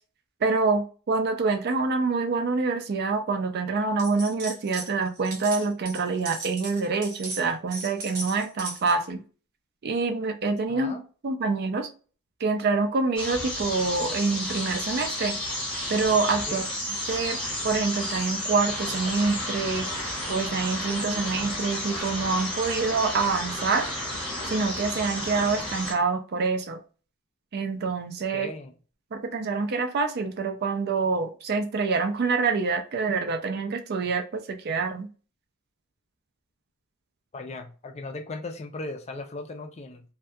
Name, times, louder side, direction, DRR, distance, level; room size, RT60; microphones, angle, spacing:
voice 1, 0.4-9.2 9.8-11.9 12.4-15.4 15.9-16.7 17.1-17.4 17.6-19.9 20.3-23.9 24.5-26.8 27.5-28.5 29.1-35.1, right 4 dB, 45° right, 0.4 m, -26 dB
sound 1, 4.0-4.9 5.2-9.0, right 2 dB, 70° right, 0.9 m, -37 dB
voice 2, 10.7-11.0 16.5-16.6 28.3-28.7 37.3-40.0, left 2 dB, 30° left, 0.3 m, -37 dB
sound 2, 13.2-25.9, left 1 dB, 5° left, 0.8 m, -32 dB
2.3 x 2.2 x 2.6 m
head